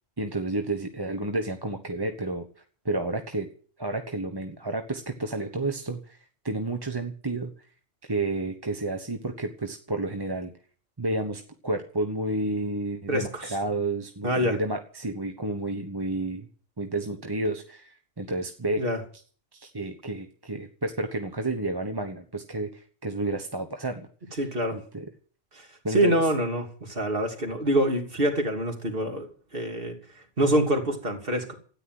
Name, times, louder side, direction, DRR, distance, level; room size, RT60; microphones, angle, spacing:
voice 1, 0.2-2.5 2.8-3.5 3.8-6.2 6.4-7.5 8.1-10.5 11.0-16.5 16.8-18.8 19.5-24.4 24.7-25.0 25.8-26.2, right 2 dB, 20° right, 5 dB, 1.1 m, -31 dB
voice 2, 13.1-13.4 14.2-14.6 18.8-19.0 24.4-24.8 25.5-29.3 29.5-30.0 30.4-31.5, equal, 50° right, 3 dB, 3.2 m, -25 dB
13.5 x 10.0 x 7.7 m, 0.44 s
omnidirectional pair, 1.2 m